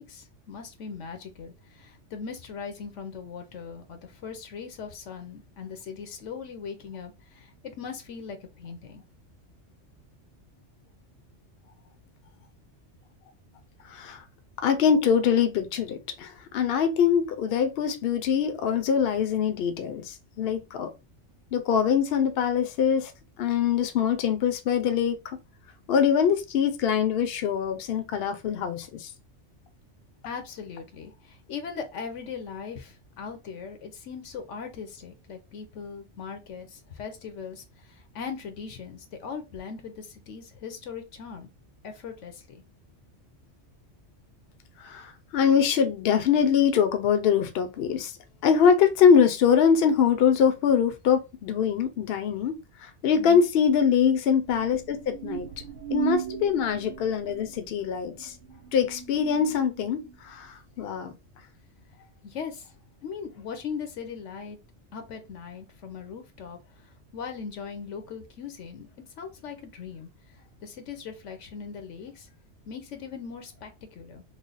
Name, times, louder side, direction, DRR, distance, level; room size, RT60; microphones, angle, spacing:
voice 1, 0.0-9.0 30.2-41.5 41.8-42.6 53.1-53.4 61.9-62.8 63.0-64.6 64.9-66.6 67.1-68.9 69.2-70.1 70.6-72.3 72.7-74.2, left 6 dB, 85° left, 1.1 m, -39 dB
voice 2, 13.9-14.2 14.6-20.9 21.5-23.1 23.4-25.4 25.9-29.1 44.8-48.1 48.4-55.5 55.9-58.3 58.7-61.1, left 7 dB, 60° left, 0.7 m, -23 dB
sound 1, 54.5-60.2, right 8 dB, 85° right, 1.0 m, -37 dB
3.2 x 2.0 x 3.9 m
omnidirectional pair, 1.2 m